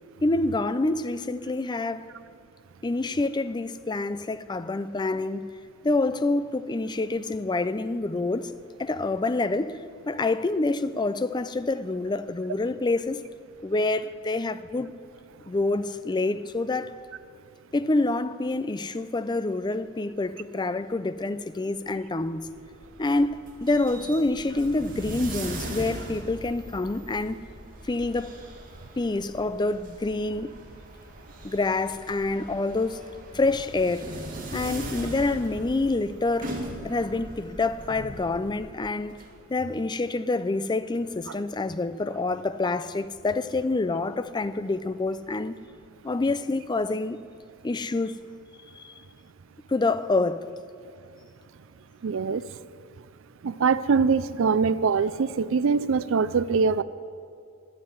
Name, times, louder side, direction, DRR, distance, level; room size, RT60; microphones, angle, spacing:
voice 1, 0.2-2.1 2.8-5.5 5.8-8.5 8.8-9.8 10.1-13.2 13.6-14.9 15.5-17.0 17.7-22.5 23.0-27.4 27.8-28.3 29.0-30.5 31.4-33.0 33.3-34.1 34.5-36.5 36.8-39.2 39.5-45.6 46.0-47.2 47.6-48.1 48.7-48.9 49.7-50.5, left 2 dB, 20° left, 0.4 m, -27 dB
sound 1, 22.2-39.3, right 1 dB, 40° right, 2.2 m, -40 dB
voice 2, 52.0-52.4 53.4-56.8, right 5 dB, 60° right, 0.4 m, -23 dB
11.5 x 8.5 x 9.7 m
head